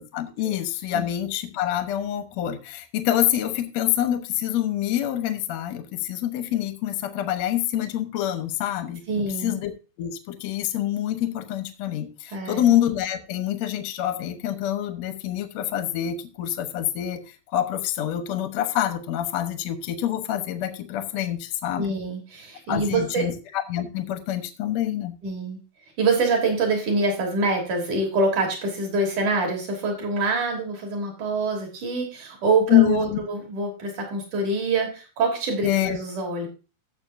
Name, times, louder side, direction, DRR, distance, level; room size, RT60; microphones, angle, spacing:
voice 1, 0.0-9.7 10.0-21.9 22.7-25.1 32.7-33.2 35.6-36.0, left 12 dB, 70° left, 9 dB, 1.7 m, -26 dB
voice 2, 9.1-9.6 12.3-12.7 21.8-23.3 25.2-25.6 26.0-36.5, right 3 dB, 50° right, 1 dB, 4.5 m, -25 dB
14.0 x 7.6 x 2.7 m, 0.32 s
omnidirectional pair, 4.6 m